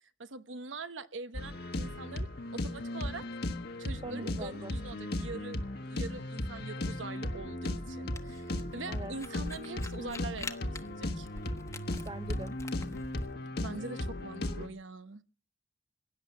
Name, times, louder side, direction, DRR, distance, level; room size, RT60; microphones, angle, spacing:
voice 1, 0.2-3.2 3.8-5.6 5.9-11.3 13.6-15.2, right 3 dB, 80° right, 1.0 m, -43 dB
sound 1, 1.3-14.7, left 1 dB, 55° left, 1.3 m, -36 dB
voice 2, 4.0-4.7 8.9-9.1 12.1-12.5, right 2 dB, 25° right, 0.7 m, -41 dB
Camera, 8.1-13.3, left 2 dB, 15° left, 1.1 m, -44 dB
17.0 x 10.5 x 7.2 m
head